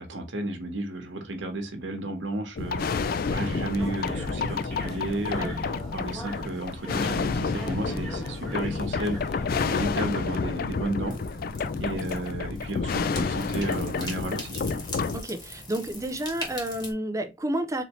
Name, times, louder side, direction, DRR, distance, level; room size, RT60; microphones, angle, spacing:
voice 1, 0.0-11.2 11.8-14.6, right 1 dB, 85° right, 1.1 m, -33 dB
sound 1, 2.6-15.2, left 4 dB, 50° left, 0.3 m, -30 dB
sound 2, 3.8-9.9, right 1 dB, 5° left, 1.4 m, -40 dB
sound 3, 10.5-16.9, left 2 dB, 20° left, 1.2 m, -41 dB
voice 2, 15.1-17.8, right 1 dB, 15° right, 0.5 m, -30 dB
4.2 x 2.7 x 3.0 m
head